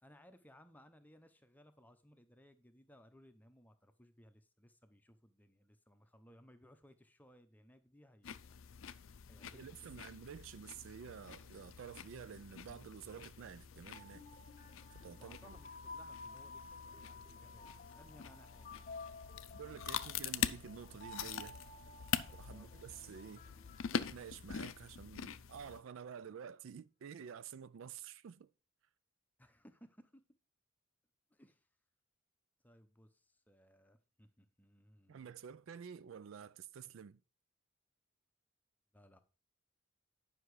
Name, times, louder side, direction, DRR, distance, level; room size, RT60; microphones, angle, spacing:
voice 1, 0.0-8.6 9.3-9.8 15.1-18.7 22.5-22.7 29.4-30.2 31.3-31.7 32.6-35.3 38.9-39.2, equal, 10° left, 0.7 m, -63 dB
sound 1, 8.2-25.8, left 8 dB, 65° left, 0.5 m, -44 dB
voice 2, 9.5-14.3 15.0-15.6 19.5-21.6 22.3-23.5 23.9-28.5 35.1-37.2, right 7 dB, 65° right, 0.4 m, -50 dB
sound 2, 13.7-24.8, left 3 dB, 35° left, 0.9 m, -54 dB
10.0 x 5.8 x 4.8 m
head